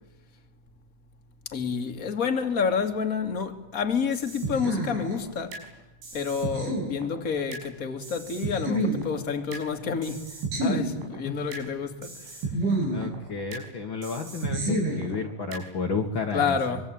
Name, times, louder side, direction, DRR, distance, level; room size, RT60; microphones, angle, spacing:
voice 1, 1.5-5.5 6.1-10.2 10.6-12.3 16.3-16.8, left 6 dB, 35° left, 1.4 m, -29 dB
sound 1, 4.1-5.7 6.0-7.7 8.0-9.7 10.0-11.7 12.0-13.7 14.0-15.7, right 1 dB, 90° right, 8.4 m, -30 dB
voice 2, 12.9-16.8, left 4 dB, 65° left, 1.2 m, -32 dB
26.0 x 24.0 x 9.0 m
omnidirectional pair, 5.3 m